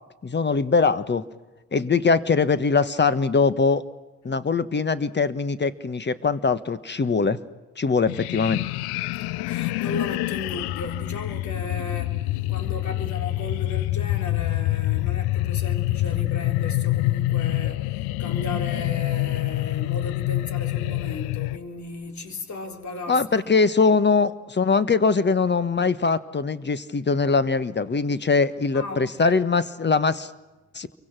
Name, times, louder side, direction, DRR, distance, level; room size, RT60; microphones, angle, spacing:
voice 1, 0.2-1.2 1.7-3.8 4.2-7.4 7.8-8.6 23.1-30.3 30.7-30.9, left 4 dB, 25° left, 1.5 m, -22 dB
sound 1, 8.1-21.6, left 17 dB, 65° left, 0.7 m, -26 dB
voice 2, 9.2-23.5 28.7-29.4, left 3 dB, 45° left, 4.0 m, -36 dB
29.5 x 24.0 x 6.2 m
hypercardioid pair, 55°, 41 cm